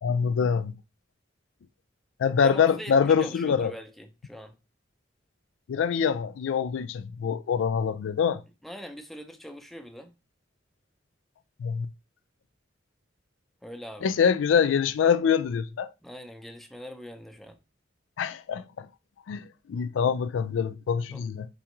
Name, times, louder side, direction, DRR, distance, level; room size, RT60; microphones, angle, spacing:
voice 1, 0.0-0.7 2.2-3.7 5.7-8.4 11.6-11.9 14.0-15.9 18.2-18.9 19.3-21.5, left 6 dB, 85° left, 0.3 m, -25 dB
voice 2, 2.4-4.6 8.6-10.2 13.6-14.1 16.0-17.6 21.1-21.3, equal, ahead, 0.5 m, -42 dB
3.5 x 3.4 x 2.9 m
head